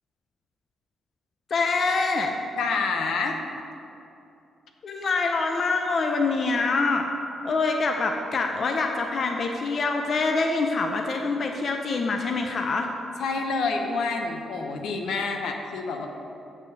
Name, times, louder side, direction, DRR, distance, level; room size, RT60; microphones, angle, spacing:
voice 1, 1.5-2.3 4.8-7.1 7.4-12.9, left 3 dB, 55° left, 3 dB, 0.6 m, -25 dB
voice 2, 2.6-3.4 13.2-16.1, left 4 dB, 80° left, 3 dB, 0.8 m, -28 dB
7.1 x 5.2 x 6.6 m, 2.8 s
cardioid pair, 75°, 0 cm